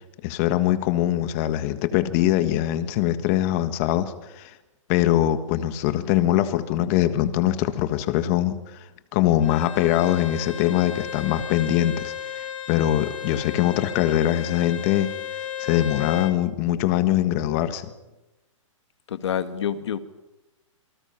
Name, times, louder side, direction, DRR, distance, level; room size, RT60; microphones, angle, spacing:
voice 1, 0.2-4.5 4.9-8.6 9.1-12.1 12.7-15.1 15.6-17.9, left 13 dB, 25° left, 1.5 m, -22 dB
Bowed string instrument, 9.4-16.4, left 9 dB, 75° left, 3.6 m, -34 dB
voice 2, 19.1-20.0, left 9 dB, 55° left, 1.9 m, -27 dB
27.5 x 25.0 x 5.9 m
hypercardioid pair, 170°, 17 cm